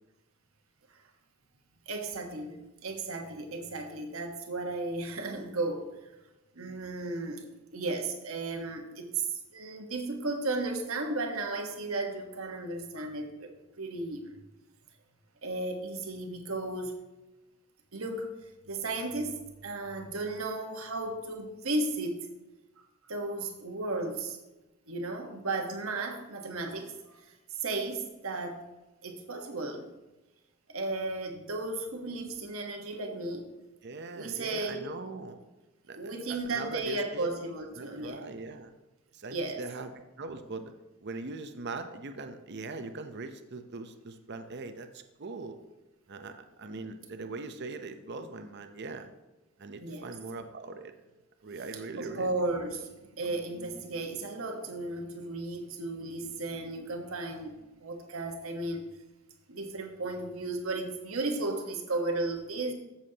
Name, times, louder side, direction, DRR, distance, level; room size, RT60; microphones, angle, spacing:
voice 1, 1.9-5.8 6.5-7.4 7.7-9.2 9.5-13.5 13.8-14.4 15.4-17.0 17.9-18.3 18.7-22.2 23.0-24.4 24.9-27.2 27.5-28.6 29.0-29.9 30.7-33.5 34.1-34.9 35.9-38.2 39.3-39.6 49.8-50.1 51.7-58.8 59.5-62.7, right 2 dB, 80° right, 3 dB, 1.3 m, -34 dB
voice 2, 33.8-35.4 35.9-37.3 37.8-38.7 39.1-39.9 40.2-40.7 41.0-45.6 46.1-49.1 49.6-50.9 51.4-52.4, right 3 dB, 55° right, 8 dB, 0.7 m, -41 dB
14.0 x 7.2 x 2.9 m, 1.1 s
head